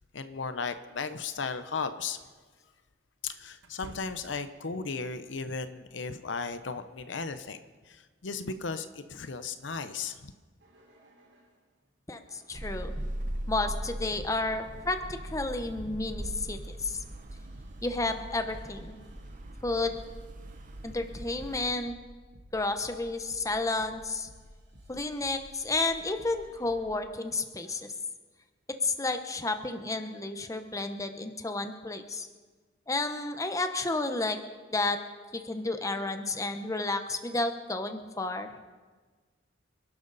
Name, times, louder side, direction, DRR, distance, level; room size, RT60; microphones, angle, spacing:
voice 1, 0.1-2.2 3.2-7.6 7.9-10.3, left 4 dB, 70° left, 10 dB, 0.8 m, -35 dB
Wooden-Door-opening+closing mono, 1.4-1.5 3.6-4.6, right 2 dB, 85° right, 1.2 m, -50 dB
sound 1, 10.6-11.6 12.3-26.9 27.6-28.0, equal, 60° right, 3.3 m, -54 dB
voice 2, 12.1-12.9 13.5-15.0 15.3-17.0 17.8-19.0 19.6-20.0 20.8-21.9 22.5-24.3 24.9-27.8 28.8-32.3 32.9-34.4 34.7-35.0 35.3-38.5, left 2 dB, 15° left, 7 dB, 1.0 m, -31 dB
sound 2, 12.5-21.8, right 1 dB, 45° right, 0.9 m, -40 dB
27.0 x 12.0 x 4.1 m, 1.4 s
head